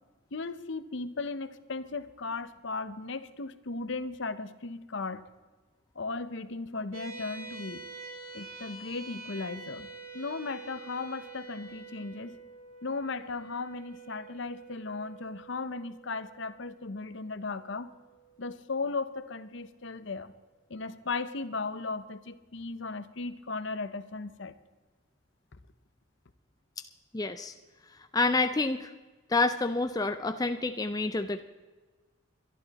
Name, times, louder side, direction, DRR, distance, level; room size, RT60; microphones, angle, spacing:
voice 1, 0.3-5.2 5.9-7.9 8.3-9.9 10.1-12.4 12.8-17.9 18.4-20.3 20.7-24.5, left 3 dB, 60° left, 13 dB, 0.8 m, -36 dB
sound 1, 6.9-19.6, right 4 dB, 80° right, 3.2 m, -48 dB
voice 2, 27.1-27.5 28.1-28.9 29.3-31.4, left 3 dB, 15° left, 8 dB, 0.4 m, -28 dB
22.5 x 11.5 x 4.1 m, 1.3 s
head